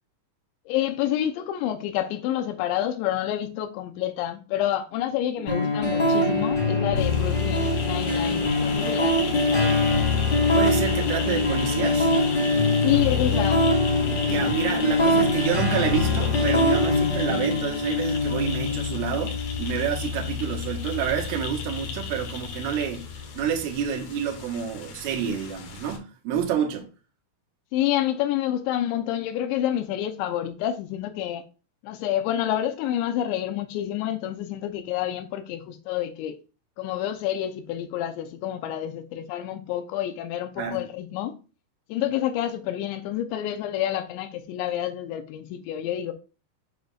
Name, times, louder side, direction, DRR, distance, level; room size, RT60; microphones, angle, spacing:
voice 1, 0.7-9.8 12.8-13.7 27.7-31.4 31.8-36.3 36.8-41.3 41.9-46.1, left 12 dB, 85° left, 2.6 m, -28 dB
sound 1, 5.5-23.4, left 2 dB, 10° left, 2.8 m, -24 dB
sound 2, 5.8-17.0, left 3 dB, 40° left, 3.6 m, -37 dB
sound 3, 7.0-26.0, left 5 dB, 65° left, 2.5 m, -36 dB
voice 2, 10.5-12.1 14.3-23.0 23.4-26.9 40.6-40.8, right 8 dB, 80° right, 3.7 m, -28 dB
7.7 x 7.2 x 2.4 m
omnidirectional pair, 5.9 m